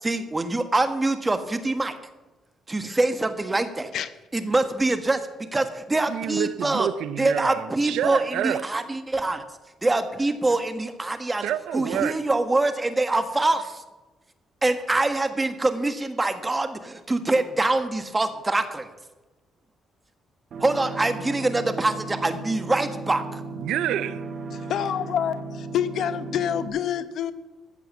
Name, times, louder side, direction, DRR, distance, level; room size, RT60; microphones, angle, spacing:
voice 1, 0.0-1.9 2.7-3.9 4.3-6.9 7.2-9.4 9.8-11.4 11.7-13.8 14.6-18.9 20.6-23.4, right 2 dB, 20° right, 9 dB, 1.5 m, -24 dB
voice 2, 6.1-8.6 11.4-12.2 23.6-24.3, right 11 dB, 85° right, 16 dB, 0.6 m, -28 dB
sound 1, 20.5-26.7, right 3 dB, 60° right, 2.7 m, -36 dB
voice 3, 24.5-27.3, left 9 dB, 70° left, 13 dB, 0.9 m, -27 dB
14.5 x 7.7 x 7.2 m, 1.1 s
cardioid pair, 90°, 0 cm